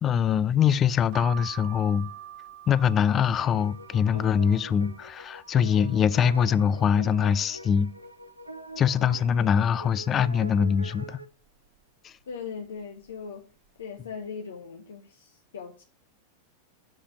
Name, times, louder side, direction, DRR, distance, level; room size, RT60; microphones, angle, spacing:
voice 1, 0.0-2.1 2.7-7.9 8.8-11.2 12.0-12.1, left 7 dB, 25° left, 0.4 m, -23 dB
sound 1, 1.1-6.8 7.3-8.0 8.4-8.5 8.7-9.8 10.3-10.7 11.4-11.8 12.5-12.8 13.1-13.3, right 11 dB, 45° right, 1.5 m, -47 dB
sound 2, 3.4-11.3, right 2 dB, 85° right, 0.8 m, -44 dB
voice 2, 9.0-9.4 12.3-13.4 13.8-15.8, left 6 dB, 65° left, 0.9 m, -39 dB
7.6 x 5.0 x 5.8 m
figure-of-eight pair, 90°, 0 cm